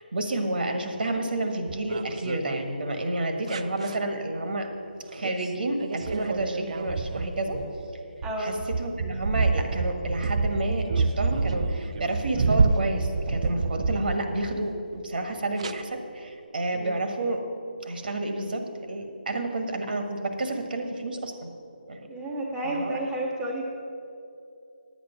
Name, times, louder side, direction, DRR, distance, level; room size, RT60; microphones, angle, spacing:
voice 1, 0.0-4.7 5.1-7.6 8.4-17.4 17.8-21.5 21.9-22.1 22.6-23.0, right 2 dB, 65° right, 5 dB, 1.5 m, -30 dB
sound 1, 1.7-2.6 3.5-4.0 5.2-5.5 5.8-14.6 15.6-15.7, right 4 dB, 40° right, 0.4 m, -28 dB
voice 2, 8.2-8.6 16.7-17.0 22.1-23.6, right 1 dB, 5° right, -3 dB, 0.8 m, -31 dB
10.0 x 8.8 x 5.9 m, 2.6 s
figure-of-eight pair, 160°, 6 cm